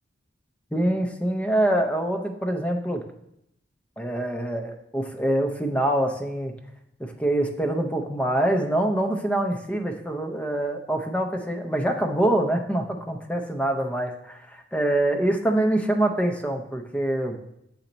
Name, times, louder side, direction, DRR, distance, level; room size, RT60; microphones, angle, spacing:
voice 1, 0.7-3.0 4.0-6.6 7.0-17.4, right 1 dB, 5° left, 3 dB, 0.6 m, -25 dB
7.1 x 4.3 x 3.9 m, 0.78 s
head